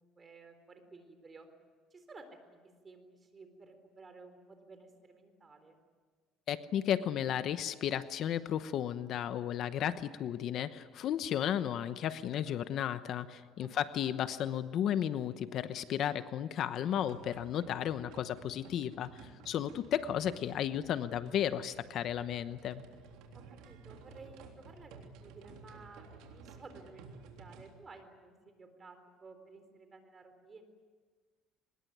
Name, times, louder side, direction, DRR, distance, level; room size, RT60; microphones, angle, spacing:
voice 1, 0.0-1.5 1.9-2.6 2.8-5.8 13.6-13.8 23.3-30.6, right 3 dB, 25° right, 8 dB, 3.9 m, -54 dB
voice 2, 6.5-22.8, left 10 dB, 55° left, 12 dB, 1.0 m, -34 dB
sound 1, 16.9-27.8, right 5 dB, 85° right, 3.5 m, -54 dB
24.0 x 21.0 x 9.4 m, 1.5 s
cardioid pair, 135°, 0 cm